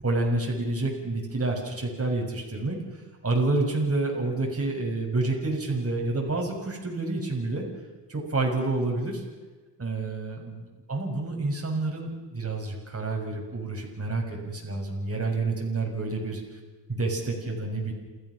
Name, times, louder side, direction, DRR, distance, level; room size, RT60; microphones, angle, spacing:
voice 1, 0.0-7.6 8.1-9.2 9.8-16.4 16.9-17.9, right 2 dB, 35° right, -1 dB, 6.8 m, -29 dB
29.0 x 15.0 x 6.5 m, 1.3 s
cardioid pair, 70°, 43 cm